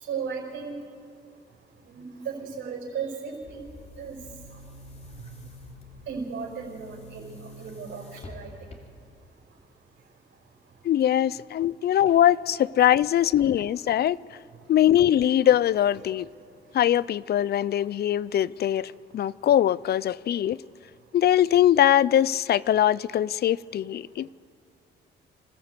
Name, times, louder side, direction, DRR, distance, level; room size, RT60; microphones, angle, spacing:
voice 1, 0.1-0.7 1.9-3.6 4.0-4.2 6.1-8.5, right 6 dB, 75° right, 5.2 m, -35 dB
Boom, 3.4-9.2, left 2 dB, 35° left, 2.9 m, -47 dB
voice 2, 10.8-14.2 14.7-16.3 16.7-20.6 21.1-24.3, left 11 dB, 55° left, 0.4 m, -22 dB
27.0 x 14.0 x 8.0 m
cardioid pair, 90°, 20 cm